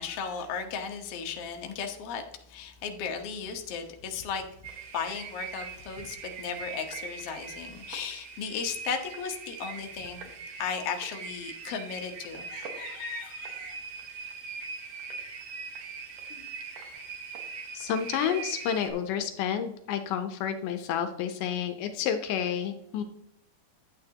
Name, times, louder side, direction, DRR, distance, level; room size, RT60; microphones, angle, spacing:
voice 1, 0.0-2.2 2.5-4.4 4.9-13.8, left 6 dB, 60° left, 4 dB, 1.7 m, -36 dB
sound 1, 4.6-18.9, right 5 dB, 60° right, 2.2 m, -41 dB
voice 2, 17.7-23.0, left 8 dB, 80° left, 8 dB, 2.2 m, -30 dB
10.5 x 8.8 x 2.9 m, 0.80 s
omnidirectional pair, 3.8 m